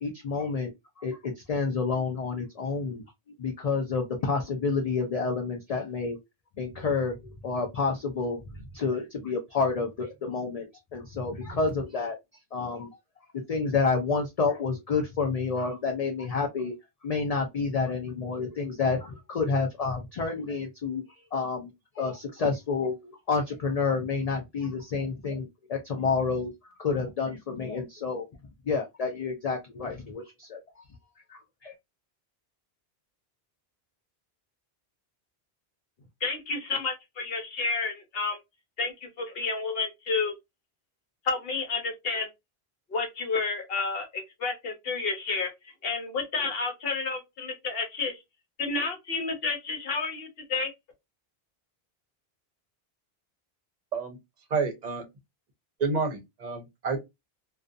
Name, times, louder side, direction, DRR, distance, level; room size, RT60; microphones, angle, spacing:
voice 1, 0.0-6.2 6.6-12.2 12.5-12.9 13.5-16.7 17.0-28.3 28.7-30.6 31.3-31.7, left 4 dB, 50° left, 0.5 m, -29 dB
voice 2, 36.2-38.4 38.8-40.3 41.2-42.3 42.9-48.2 48.6-50.7, left 4 dB, 70° left, 0.9 m, -30 dB
voice 3, 54.5-55.0 55.8-57.0, right 4 dB, 50° right, 0.7 m, -29 dB
2.4 x 2.2 x 2.4 m
omnidirectional pair, 1.0 m